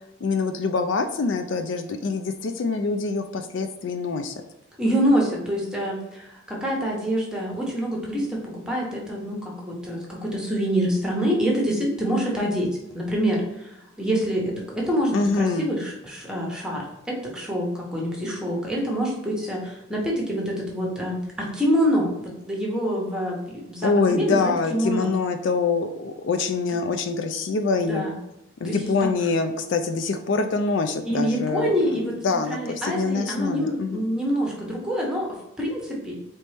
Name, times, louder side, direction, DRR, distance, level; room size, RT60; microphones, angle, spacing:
voice 1, 0.2-4.4 15.1-15.7 23.8-28.0 28.6-34.1, left 4 dB, 60° left, 7 dB, 0.4 m, -25 dB
voice 2, 4.8-25.1 26.5-26.6 27.9-28.1 28.6-29.1 31.0-32.2 32.5-36.2, equal, 5° right, -2 dB, 1.0 m, -26 dB
4.4 x 3.1 x 3.3 m, 0.85 s
head